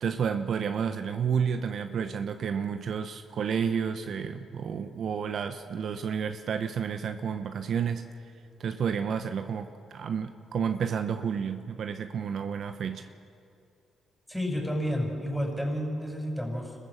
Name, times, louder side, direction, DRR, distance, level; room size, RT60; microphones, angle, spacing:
voice 1, 0.0-8.0 8.6-13.1, right 7 dB, 60° right, 8 dB, 0.9 m, -30 dB
voice 2, 14.3-16.8, equal, ahead, 1 dB, 6.2 m, -30 dB
26.5 x 14.0 x 7.4 m, 2.6 s
supercardioid pair, 55°, 0 cm